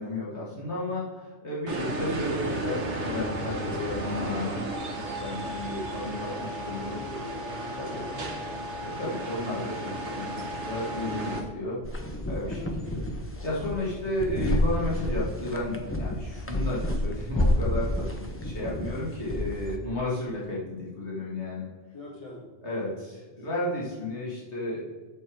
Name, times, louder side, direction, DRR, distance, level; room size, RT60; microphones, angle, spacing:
voice 1, 0.0-7.0 7.8-8.1 8.8-11.8 12.3-12.6 12.9-13.0 13.4-21.7 22.6-24.8, left 1 dB, 75° left, -5 dB, 2.2 m, -33 dB
sound 1, 1.7-11.4, right 1 dB, 80° right, 1.3 m, -33 dB
voice 2, 5.9-8.5 12.4-12.7 21.9-23.0 23.4-23.5, left 1 dB, 30° left, -4 dB, 2.3 m, -44 dB
sound 2, 11.8-19.8, left 1 dB, 15° left, 0.8 m, -29 dB
7.6 x 6.6 x 4.6 m, 1.3 s
omnidirectional pair, 1.2 m